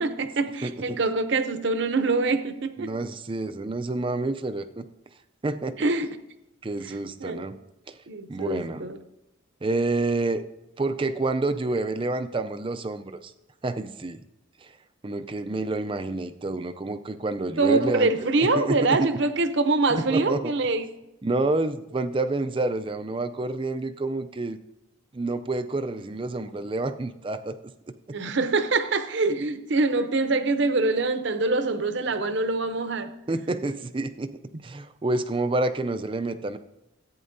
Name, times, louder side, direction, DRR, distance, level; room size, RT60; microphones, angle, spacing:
voice 1, 0.0-2.9 5.8-6.1 7.2-7.5 8.1-9.0 17.6-20.8 28.1-33.1, right 3 dB, 55° right, 0.7 m, -24 dB
voice 2, 0.6-1.0 2.8-4.8 5.4-5.9 6.6-7.6 7.9-8.0 8.3-8.9 9.6-10.4 10.8-13.3 13.6-14.2 14.6-14.8 15.0-18.1 18.4-19.1 19.9-20.5 21.2-24.6 25.1-27.6 27.9-28.2 33.3-36.6, right 2 dB, 25° right, 0.4 m, -28 dB
14.5 x 8.8 x 2.7 m
head